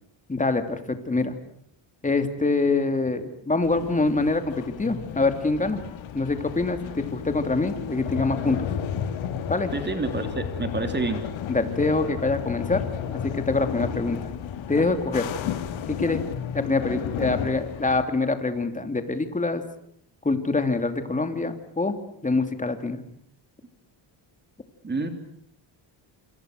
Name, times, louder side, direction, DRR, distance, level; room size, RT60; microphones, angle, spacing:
voice 1, 0.3-1.3 2.0-5.8 6.1-6.8 7.1-8.7 9.5-9.7 11.5-12.8 13.1-14.3 14.7-15.3 15.9-16.2 16.5-19.6 20.2-23.0, left 3 dB, 15° left, 8 dB, 2.8 m, -25 dB
sound 1, 3.6-18.1, left 8 dB, 80° left, 2.5 m, -33 dB
voice 2, 9.7-11.2 24.8-25.1, right 3 dB, 20° right, 7 dB, 3.2 m, -28 dB
27.5 x 27.5 x 6.6 m, 0.69 s
cardioid pair, 135°, 46 cm